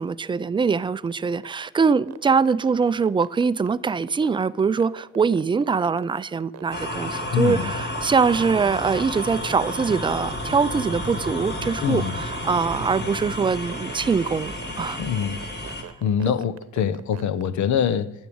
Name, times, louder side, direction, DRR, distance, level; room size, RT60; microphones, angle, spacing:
voice 1, 0.0-14.5 14.8-15.0, right 5 dB, 15° right, 0.4 m, -23 dB
sound 1, 0.6-17.6, right 10 dB, 60° right, 0.9 m, -41 dB
sound 2, 6.7-15.8, left 1 dB, 35° left, 2.5 m, -31 dB
voice 2, 7.3-7.7 11.8-12.2 15.0-15.4 16.0-18.1, left 8 dB, 70° left, 0.8 m, -24 dB
10.5 x 7.3 x 8.5 m
cardioid pair, 90°, 30 cm